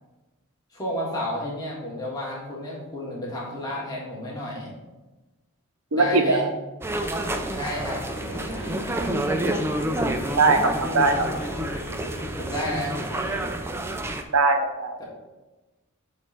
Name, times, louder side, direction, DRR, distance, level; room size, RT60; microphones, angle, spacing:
voice 1, 0.7-4.7 5.9-6.5 7.5-8.0 12.4-13.0, left 1 dB, 15° left, -6 dB, 1.7 m, -31 dB
voice 2, 5.9-6.5 10.4-11.1 14.3-15.0, right 3 dB, 80° right, 6 dB, 0.8 m, -20 dB
sound 1, 6.8-14.2, right 1 dB, 10° right, 0.4 m, -29 dB
sound 2, 8.1-13.5, left 1 dB, 50° left, 0.9 m, -38 dB
7.7 x 3.2 x 5.6 m, 1.1 s
head